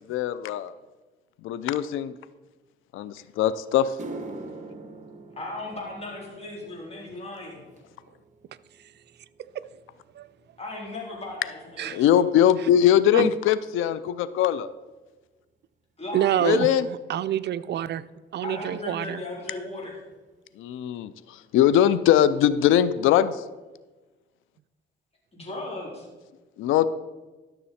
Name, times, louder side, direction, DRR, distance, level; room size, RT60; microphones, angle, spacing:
voice 1, 0.1-0.7 1.4-2.1 2.9-3.9 11.9-14.7 16.4-16.9 20.6-23.4 26.6-26.9, left 10 dB, 85° left, 16 dB, 0.5 m, -21 dB
sound 1, 3.3-3.4 3.8-12.3 12.6-13.0 13.8-13.9 16.6-16.7 18.4-18.5 18.6-18.9 19.1-19.7 20.1-20.2 20.7-20.8, right 2 dB, 40° right, 1.1 m, -45 dB
voice 2, 5.4-7.6 10.6-12.2 16.0-16.5 18.4-20.0 25.3-26.1, left 2 dB, 30° left, -2 dB, 3.5 m, -37 dB
voice 3, 16.1-18.0 18.3-19.2, right 11 dB, 60° right, 14 dB, 0.5 m, -27 dB
12.5 x 6.7 x 4.2 m, 1.2 s
cardioid pair, 90°, 20 cm